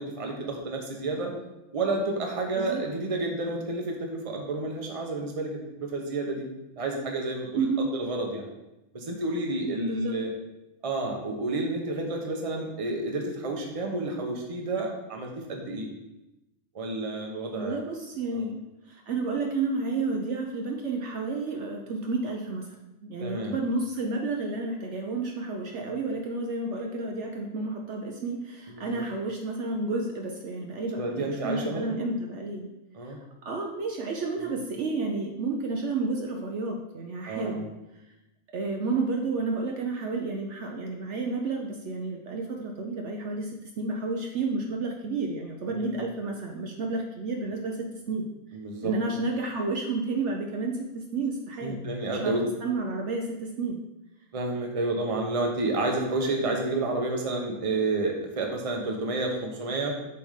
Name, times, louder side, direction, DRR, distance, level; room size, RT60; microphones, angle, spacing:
voice 1, 0.0-1.3 1.7-6.4 6.8-7.7 7.9-8.5 8.9-10.3 10.8-15.9 16.7-17.8 18.3-18.5 23.2-23.6 28.8-29.0 30.9-31.9 32.9-33.2 34.4-34.5 37.3-37.6 45.7-46.0 48.5-48.9 51.6-52.4 54.3-59.9, right 2 dB, 30° right, 1 dB, 0.9 m, -30 dB
voice 2, 7.6-7.9 9.8-10.2 17.5-18.6 18.9-22.8 23.1-32.7 33.4-37.7 38.5-48.3 48.8-51.8 52.2-53.8, right 3 dB, 65° right, 1 dB, 0.9 m, -31 dB
6.9 x 3.5 x 5.0 m, 0.95 s
omnidirectional pair, 1.4 m